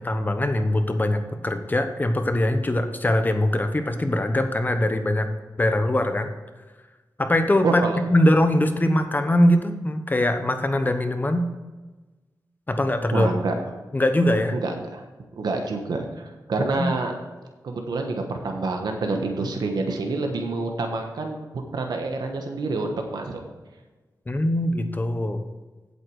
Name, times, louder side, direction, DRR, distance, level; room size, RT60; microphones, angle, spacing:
voice 1, 0.0-5.3 5.6-6.3 7.2-7.8 8.1-11.5 12.7-13.3 13.9-14.5 16.6-16.9 24.3-25.4, left 1 dB, 25° left, 7 dB, 1.0 m, -22 dB
voice 2, 7.6-8.0 13.1-13.5 14.5-15.0 15.3-17.1 17.6-21.5 21.7-23.4, right 3 dB, 90° right, 3 dB, 1.2 m, -27 dB
8.3 x 8.0 x 4.8 m, 1.2 s
wide cardioid pair, 80°, 7 cm